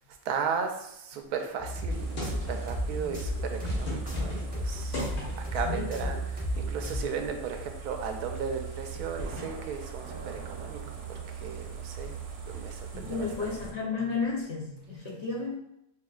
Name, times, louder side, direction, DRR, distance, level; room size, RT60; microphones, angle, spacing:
voice 1, 0.2-5.1 5.3-10.8 11.1-12.2 12.5-13.5, right 6 dB, 90° right, 5 dB, 1.1 m, -36 dB
sound 1, 1.6-7.1, right 1 dB, 10° right, 0.6 m, -33 dB
sound 2, 1.9-2.8 3.3-5.6 6.5-7.1 7.4-7.5 8.1-9.6 12.5-12.7, left 2 dB, 75° left, 1.7 m, -40 dB
sound 3, 1.9-13.7, right 5 dB, 55° right, 0.7 m, -41 dB
voice 2, 5.6-6.1 12.9-15.6, left 4 dB, 60° left, -2 dB, 0.8 m, -33 dB
5.4 x 2.4 x 2.3 m, 0.82 s
omnidirectional pair, 1.6 m